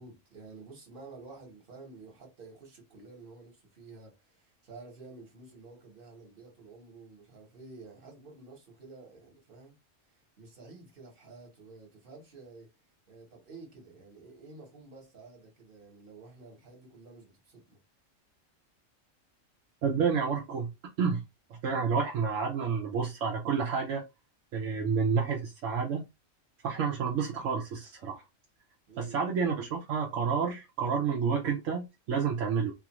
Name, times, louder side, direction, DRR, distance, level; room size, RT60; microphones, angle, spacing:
voice 1, 0.0-9.8 10.1-12.7 13.1-17.8 28.9-29.2, right 3 dB, 45° right, 1.3 m, -51 dB
voice 2, 19.8-20.7 21.0-21.2 21.5-24.0 24.5-26.0 26.6-28.2 29.0-32.7, right 6 dB, 75° right, 1.0 m, -29 dB
2.7 x 2.5 x 2.9 m
omnidirectional pair, 1.3 m